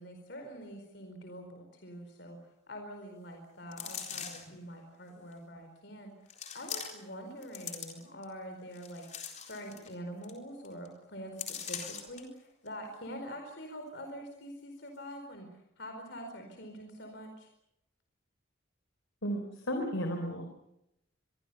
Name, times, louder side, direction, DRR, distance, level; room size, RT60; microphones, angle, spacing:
voice 1, 0.0-2.4 2.7-9.0 9.5-15.5 15.8-17.5, equal, 55° left, 4 dB, 4.5 m, -45 dB
sound 1, 3.7-4.6 5.3-5.4 6.3-7.1 7.4-8.2 8.7-9.9 10.2-10.4 10.6-10.9 11.4-12.2 12.7-12.8, left 8 dB, 35° left, 4.0 m, -41 dB
voice 2, 19.2-20.5, equal, 85° left, 5 dB, 3.9 m, -33 dB
26.0 x 22.5 x 6.9 m, 0.81 s
head